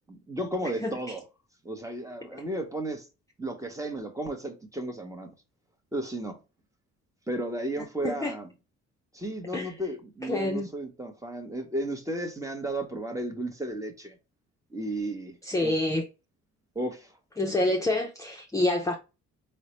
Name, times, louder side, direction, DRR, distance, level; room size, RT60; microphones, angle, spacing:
voice 1, 0.1-1.2 1.6-3.1 3.4-5.4 5.9-6.4 7.3-8.5 9.1-14.1 14.7-15.7 16.7-17.1, right 1 dB, 10° right, 0.9 m, -34 dB
voice 2, 7.8-8.3 9.5-9.7 10.2-10.7 15.4-16.0 17.4-19.0, left 1 dB, 10° left, 0.5 m, -27 dB
3.8 x 2.1 x 3.0 m
cardioid pair, 90°, 30 cm